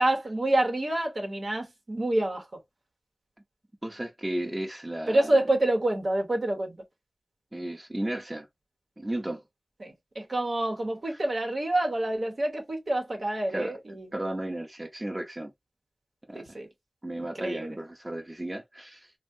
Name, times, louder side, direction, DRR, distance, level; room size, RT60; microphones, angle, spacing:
voice 1, 0.0-2.5 5.1-6.8 9.8-14.1 16.3-16.7 17.2-17.8, right 1 dB, 70° right, 0.9 m, -27 dB
voice 2, 3.8-5.4 7.5-8.5 9.0-9.4 13.5-13.8 14.1-15.5 16.3-16.6 17.0-19.1, right 1 dB, 25° right, 0.7 m, -34 dB
3.5 x 2.1 x 2.6 m
wide cardioid pair, 45°, 0 cm